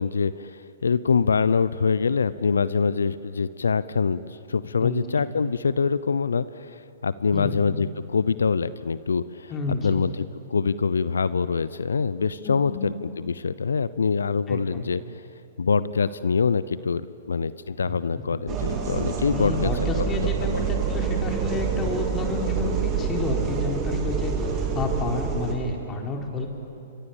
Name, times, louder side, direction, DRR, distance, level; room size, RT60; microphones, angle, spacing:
voice 1, 0.0-9.5 9.8-15.0 15.6-19.9 20.4-20.6, left 5 dB, 80° left, 17 dB, 0.7 m, -25 dB
voice 2, 7.3-7.6 9.5-10.0 12.4-12.9 14.5-14.8 17.8-18.0 19.3-26.5, left 3 dB, 20° left, 1 dB, 3.9 m, -30 dB
sound 1, 18.5-25.5, right 6 dB, 30° right, 3.5 m, -27 dB
29.0 x 24.5 x 7.2 m, 2.7 s
hypercardioid pair, 120°, 0 cm